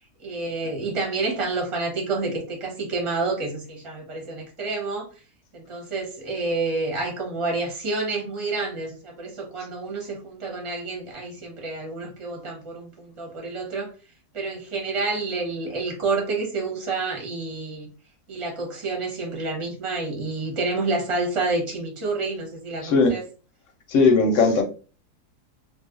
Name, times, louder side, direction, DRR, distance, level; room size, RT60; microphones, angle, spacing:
voice 1, 0.2-5.1 5.5-13.9 14.3-17.9 18.3-23.2, right 3 dB, 25° right, 0 dB, 0.8 m, -29 dB
voice 2, 22.8-23.1 23.9-24.6, left 4 dB, 60° left, 4 dB, 0.9 m, -18 dB
2.5 x 2.3 x 3.6 m, 0.35 s
omnidirectional pair, 1.7 m